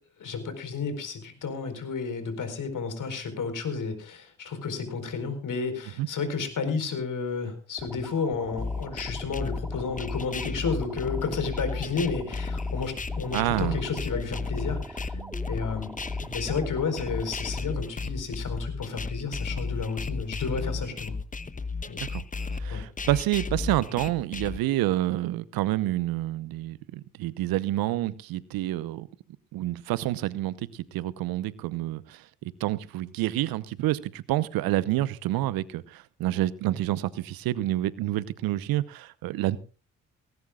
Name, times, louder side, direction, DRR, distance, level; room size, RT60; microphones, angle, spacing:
voice 1, 0.2-15.2 15.5-15.9 16.2-21.2 21.9-22.1 22.7-22.9, left 5 dB, 55° left, 4.5 m, -32 dB
sound 1, 7.8-17.8, right 1 dB, 5° right, 2.3 m, -43 dB
sound 2, 8.6-24.6, left 4 dB, 20° left, 1.1 m, -33 dB
voice 2, 13.3-13.8 15.1-15.3 22.0-22.2 22.5-29.1 29.5-39.6, right 15 dB, 65° right, 0.9 m, -28 dB
19.0 x 17.5 x 2.4 m
hypercardioid pair, 45°, 37 cm